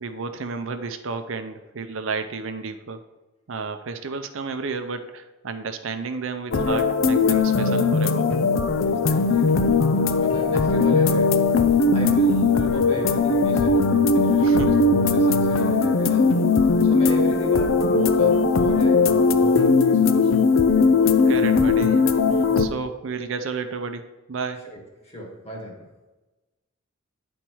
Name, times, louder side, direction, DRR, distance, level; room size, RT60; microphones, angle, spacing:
voice 1, 0.0-3.0 3.5-8.3 14.4-14.8 21.0-22.1 22.4-24.7, right 4 dB, 65° right, 8 dB, 0.6 m, -32 dB
sound 1, 6.5-22.7, left 4 dB, 65° left, 0.5 m, -19 dB
voice 2, 8.8-9.9 10.1-16.3 16.8-20.5 24.6-26.0, equal, 30° left, -1 dB, 1.8 m, -36 dB
10.0 x 4.4 x 4.6 m, 1.1 s
head